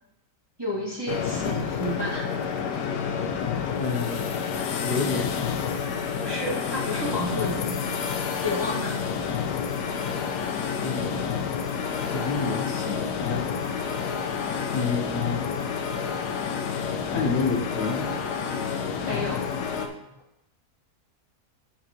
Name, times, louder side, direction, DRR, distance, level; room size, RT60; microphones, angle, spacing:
voice 1, 0.6-2.4 6.1-7.8 8.4-9.0 19.0-19.5, left 1 dB, 15° right, -6 dB, 1.6 m, -31 dB
sound 1, 1.1-19.9, left 6 dB, 85° left, 1.3 m, -29 dB
voice 2, 3.8-4.3 4.8-5.4 10.8-11.3 12.1-13.5 14.7-15.4 17.1-18.1, left 4 dB, 65° left, 0 dB, 1.5 m, -29 dB
9.6 x 5.8 x 3.0 m, 0.87 s
omnidirectional pair, 1.7 m